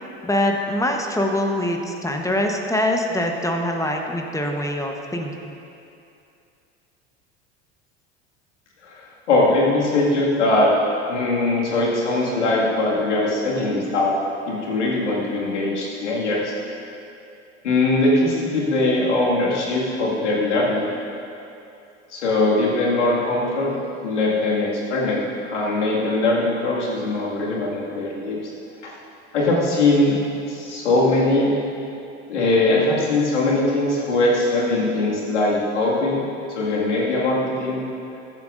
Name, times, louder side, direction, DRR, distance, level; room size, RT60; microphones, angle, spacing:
voice 1, 0.2-5.3, left 1 dB, 10° left, 2 dB, 1.1 m, -23 dB
voice 2, 8.8-10.7 11.1-14.2 14.5-16.5 17.6-20.9 22.1-23.8 24.0-25.2 25.5-28.4 28.8-28.9 29.3-30.2 30.5-31.5 32.3-37.8, left 2 dB, 85° left, -4 dB, 2.2 m, -21 dB
14.0 x 10.5 x 2.6 m, 2.7 s
hypercardioid pair, 75°, 34 cm